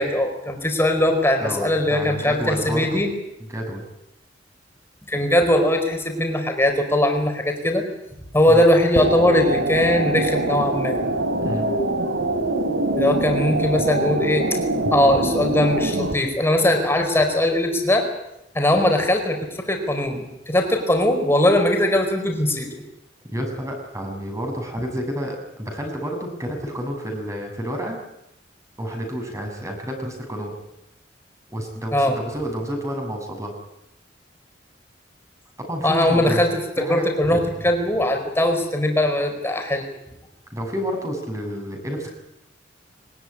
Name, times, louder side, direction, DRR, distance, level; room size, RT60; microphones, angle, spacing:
voice 1, 0.0-3.1 5.1-7.9 8.3-11.0 13.0-14.4 14.9-18.1 18.5-22.8 31.9-32.1 35.8-36.6 36.9-39.9, left 1 dB, 15° left, 5 dB, 4.8 m, -20 dB
voice 2, 1.4-3.0 3.4-3.8 8.5-8.6 11.4-11.7 23.3-28.0 28.8-30.5 31.5-33.5 35.7-36.4 36.8-37.1 37.3-37.7 40.5-42.1, equal, 20° right, 3 dB, 6.6 m, -29 dB
sound 1, 9.0-16.1, right 2 dB, 90° right, 3.1 m, -24 dB
22.5 x 20.0 x 9.9 m, 0.85 s
head